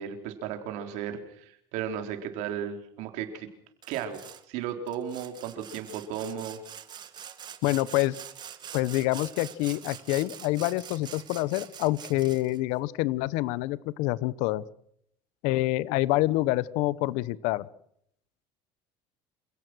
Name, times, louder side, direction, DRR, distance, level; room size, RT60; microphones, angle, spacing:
voice 1, 0.0-3.5 3.9-6.6, right 8 dB, 75° right, 6 dB, 4.0 m, -35 dB
Sawing, 3.8-4.4 4.9-12.6, right 9 dB, 35° right, 2.0 m, -44 dB
voice 2, 7.6-8.2 8.7-14.6 15.4-17.7, left 18 dB, 75° left, 19 dB, 1.0 m, -27 dB
27.5 x 17.5 x 6.3 m, 0.69 s
cardioid pair, 125°, 12 cm